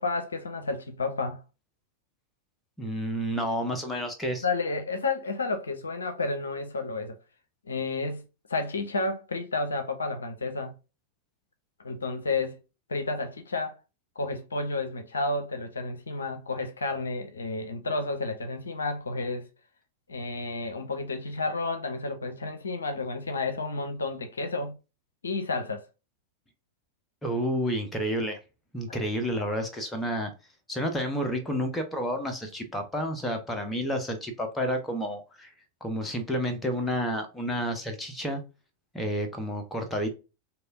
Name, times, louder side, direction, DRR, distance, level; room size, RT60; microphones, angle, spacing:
voice 1, 0.0-1.4 4.4-7.2 7.7-10.7 11.8-12.6 12.9-13.8 14.2-19.5 20.1-24.8 25.2-25.9 28.9-29.0, left 3 dB, 70° left, 0.5 m, -31 dB
voice 2, 2.8-4.4 27.2-28.4 28.7-30.3 30.7-35.5 35.8-38.4 38.9-40.1, equal, 10° left, 0.9 m, -30 dB
3.3 x 2.7 x 2.5 m
figure-of-eight pair, 90°, 0 cm